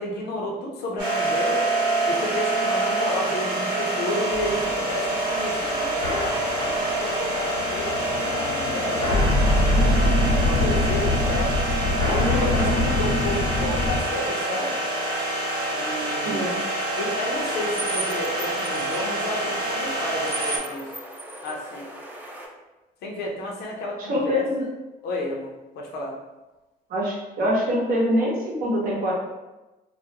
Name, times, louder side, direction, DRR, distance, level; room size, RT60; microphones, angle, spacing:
voice 1, 0.0-1.7 2.0-6.1 7.0-9.8 10.3-11.6 12.1-14.8 15.7-16.5 17.0-20.9 21.4-21.9 23.0-24.4 25.0-26.2, left 1 dB, 75° left, -1 dB, 0.6 m, -31 dB
sound 1, 1.0-20.6, right 1 dB, 85° right, 0.9 m, -26 dB
sound 2, 4.3-14.0, left 1 dB, 90° left, 1.0 m, -24 dB
voice 2, 16.3-16.6 24.0-24.6 26.9-29.1, equal, 55° right, -2 dB, 0.7 m, -24 dB
sound 3, 17.4-22.5, right 2 dB, 10° right, 0.4 m, -36 dB
2.3 x 2.1 x 2.8 m, 1.1 s
cardioid pair, 110°, 17 cm